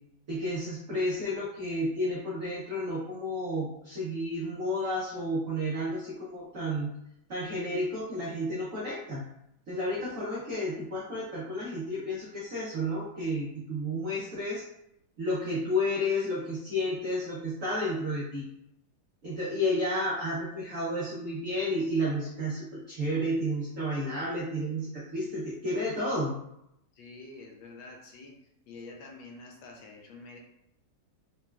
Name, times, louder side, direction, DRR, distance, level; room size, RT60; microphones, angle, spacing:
voice 1, 0.3-6.9 7.3-9.2 9.7-14.6 15.2-18.4 19.2-26.3, equal, 75° right, -6 dB, 0.7 m, -31 dB
voice 2, 27.0-28.4 28.7-30.4, left 3 dB, 75° left, 1 dB, 1.3 m, -47 dB
3.9 x 2.2 x 2.3 m, 0.80 s
omnidirectional pair, 2.2 m